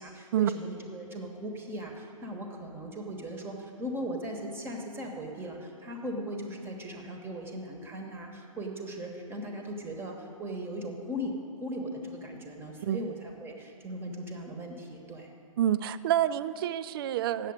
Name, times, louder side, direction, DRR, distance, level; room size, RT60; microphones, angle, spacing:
voice 1, 0.0-15.3, equal, 15° right, 2 dB, 1.0 m, -38 dB
voice 2, 15.6-17.5, right 11 dB, 45° right, 14 dB, 0.4 m, -27 dB
8.3 x 7.1 x 8.7 m, 2.8 s
figure-of-eight pair, 115°, 18 cm